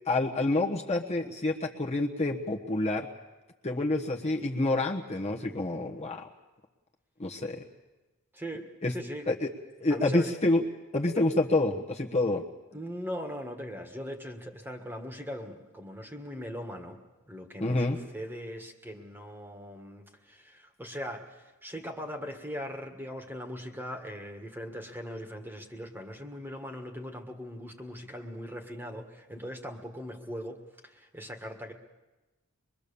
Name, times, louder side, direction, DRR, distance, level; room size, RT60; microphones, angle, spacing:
voice 1, 0.1-3.1 3.6-6.2 7.2-7.6 8.8-8.9 9.3-9.5 9.8-10.6 10.9-12.4 17.6-18.0, left 2 dB, 30° left, 0 dB, 1.2 m, -28 dB
voice 2, 8.3-9.3 9.9-10.3 11.2-11.3 12.7-31.7, equal, 10° right, 4 dB, 1.7 m, -40 dB
24.0 x 22.5 x 7.0 m, 1.1 s
head